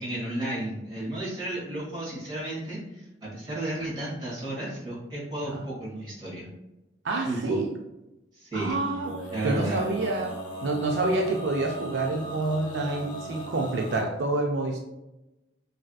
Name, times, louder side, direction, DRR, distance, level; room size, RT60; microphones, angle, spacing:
voice 1, 0.0-6.5 7.2-7.6 8.3-8.8 9.3-9.8, right 1 dB, 25° right, -7 dB, 1.5 m, -33 dB
voice 2, 7.0-7.7 8.5-9.2 9.4-14.8, right 2 dB, 85° right, 1 dB, 0.4 m, -28 dB
Male singing, 8.7-14.0, equal, 25° left, 0.5 m, -39 dB
3.3 x 2.6 x 2.3 m, 0.95 s
head